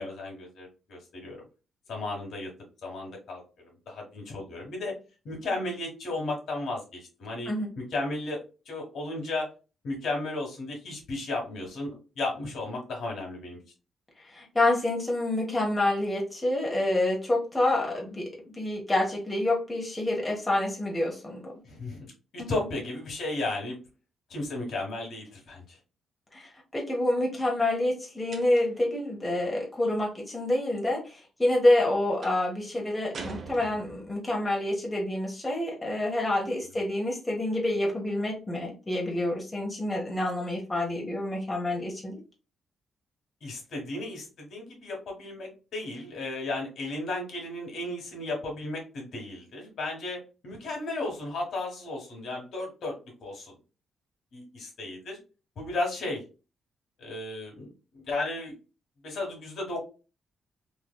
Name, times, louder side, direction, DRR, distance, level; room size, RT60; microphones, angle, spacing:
voice 1, 0.0-1.4 1.9-2.5 2.8-5.0 5.2-9.5 9.8-13.6 21.6-23.8 24.3-25.8 36.7-36.8 43.4-53.6 54.3-55.2 55.5-56.2 57.0-57.7 57.9-58.5 59.0-59.8, left 2 dB, 70° left, 0 dB, 1.5 m, -34 dB
voice 2, 14.2-21.5 22.4-22.5 26.3-42.2, left 1 dB, 15° left, -2 dB, 1.2 m, -27 dB
sound 1, 28.3-28.9 32.2-32.5 33.1-34.2, right 4 dB, 50° right, 0.7 m, -42 dB
3.2 x 2.9 x 2.3 m, 0.32 s
cardioid pair, 115°, 0 cm